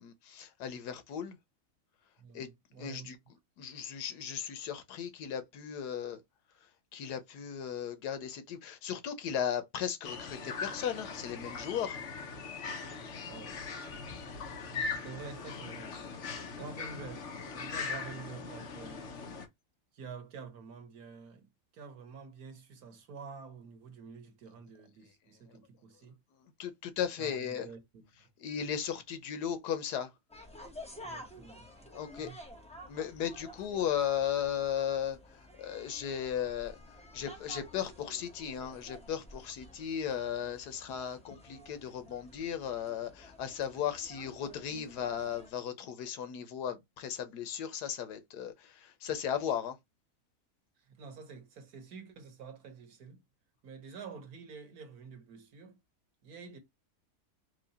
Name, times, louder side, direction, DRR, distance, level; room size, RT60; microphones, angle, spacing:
voice 1, 0.0-1.4 2.3-2.5 2.8-3.2 3.6-6.2 6.9-12.0 26.4-27.7 28.4-30.1 31.9-32.3 32.9-36.8 37.1-49.8, left 9 dB, 85° left, 1.4 m, -36 dB
voice 2, 2.2-3.1 13.3-13.6 14.6-16.0 16.5-19.3 19.9-26.2 27.2-28.3 31.0-31.9 32.2-32.4 50.8-53.2 53.6-55.8 56.2-56.6, right 5 dB, 70° right, 1.6 m, -48 dB
sound 1, 10.0-19.5, left 4 dB, 55° left, 1.0 m, -40 dB
sound 2, 30.3-45.5, left 1 dB, 5° left, 0.7 m, -51 dB
4.7 x 2.3 x 4.0 m
omnidirectional pair, 1.7 m